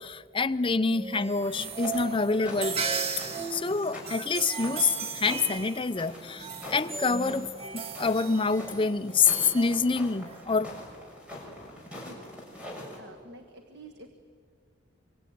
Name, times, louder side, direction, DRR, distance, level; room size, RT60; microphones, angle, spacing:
voice 1, 0.0-2.8 3.5-7.5 7.7-10.7, left 4 dB, 25° left, 10 dB, 0.7 m, -27 dB
sound 1, 0.9-10.4, right 5 dB, 30° right, 1.2 m, -36 dB
sound 2, 1.4-13.0, left 1 dB, 5° right, 6.7 m, -44 dB
voice 2, 12.1-12.4 13.0-14.1, right 1 dB, 65° right, 6 dB, 1.5 m, -49 dB
25.0 x 24.5 x 9.4 m, 2.1 s
head